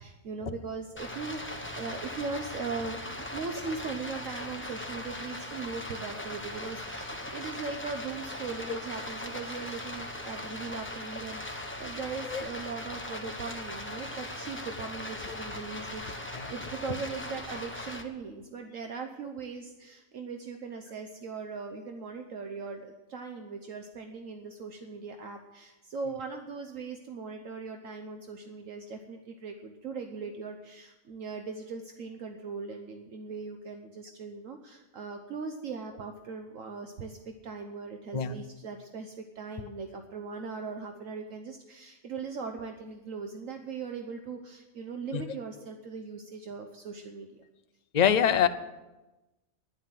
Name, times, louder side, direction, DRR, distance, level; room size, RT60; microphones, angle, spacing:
voice 1, 0.0-47.4, right 4 dB, 65° right, 5 dB, 1.3 m, -39 dB
Stream, 1.0-18.0, left 1 dB, 10° left, 1.1 m, -39 dB
voice 2, 47.9-48.5, left 8 dB, 45° left, 10 dB, 0.5 m, -24 dB
11.0 x 10.5 x 7.6 m, 1.1 s
omnidirectional pair, 1.5 m